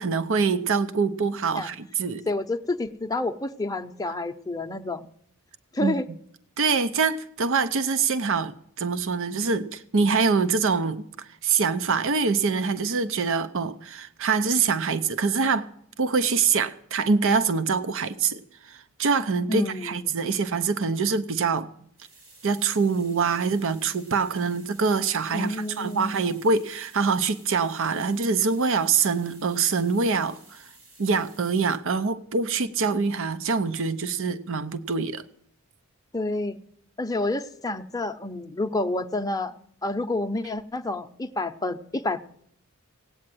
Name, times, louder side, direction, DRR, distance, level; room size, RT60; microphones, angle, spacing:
voice 1, 0.0-2.2 5.8-6.0 6.6-15.7 16.0-18.4 18.7-21.7 22.4-30.7 31.0-35.2, right 5 dB, 65° right, 12 dB, 0.7 m, -25 dB
voice 2, 2.3-5.0 5.7-6.1 19.5-20.1 25.3-26.3 36.1-36.6 37.0-39.5 39.8-42.2, left 2 dB, 15° left, 6 dB, 0.7 m, -29 dB
sound 1, 21.9-31.8, right 2 dB, 90° right, 4.2 m, -53 dB
17.5 x 8.7 x 7.6 m, 0.69 s
head